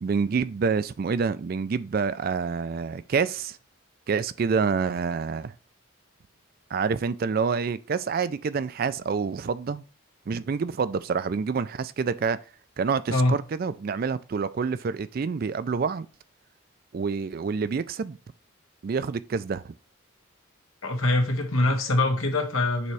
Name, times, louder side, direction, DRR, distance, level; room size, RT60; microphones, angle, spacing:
voice 1, 0.0-3.6 4.1-5.5 6.7-9.9 10.3-12.4 12.8-16.1 16.9-18.2 18.8-19.7, right 5 dB, 45° right, 0.3 m, -27 dB
voice 2, 20.8-22.9, left 2 dB, 85° left, 1.6 m, -23 dB
6.8 x 3.1 x 4.8 m
head